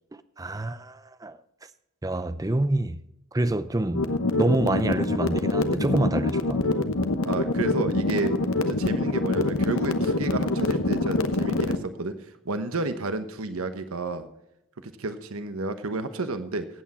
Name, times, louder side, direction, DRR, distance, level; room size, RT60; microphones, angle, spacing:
voice 1, 0.4-1.4 2.0-3.0 3.3-6.6, right 1 dB, 15° right, 0.5 m, -27 dB
sound 1, 3.9-11.8, left 2 dB, 75° left, 1.1 m, -25 dB
voice 2, 7.2-8.4 8.7-12.2 12.4-14.3 14.8-16.7, right 3 dB, 80° right, 1.1 m, -31 dB
15.5 x 8.5 x 4.2 m
head